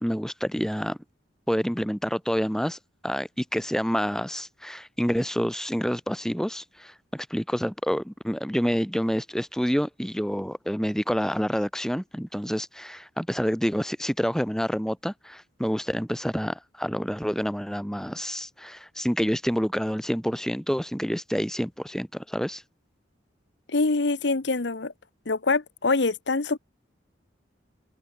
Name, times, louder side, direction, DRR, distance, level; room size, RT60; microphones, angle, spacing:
voice 1, 0.0-1.0 1.5-22.6, equal, 5° left, 2.5 m, -28 dB
voice 2, 23.7-24.9 25.3-26.6, left 3 dB, 65° left, 1.0 m, -24 dB
open air
head